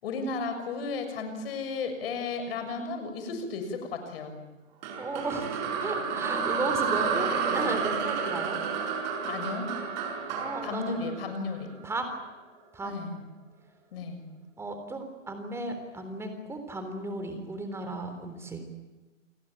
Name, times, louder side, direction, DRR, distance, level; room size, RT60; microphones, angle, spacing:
voice 1, 0.0-4.4 9.2-9.7 10.6-11.7 12.8-13.2 13.9-14.3, left 4 dB, 50° left, 7 dB, 6.8 m, -34 dB
sound 1, 4.8-12.0, right 6 dB, 35° right, 5.8 m, -31 dB
voice 2, 5.0-8.6 10.4-11.0 11.8-12.1 12.7-12.9 14.6-18.7, right 2 dB, 5° right, 7 dB, 3.7 m, -35 dB
29.5 x 18.5 x 9.1 m, 1.2 s
hypercardioid pair, 150°, 37 cm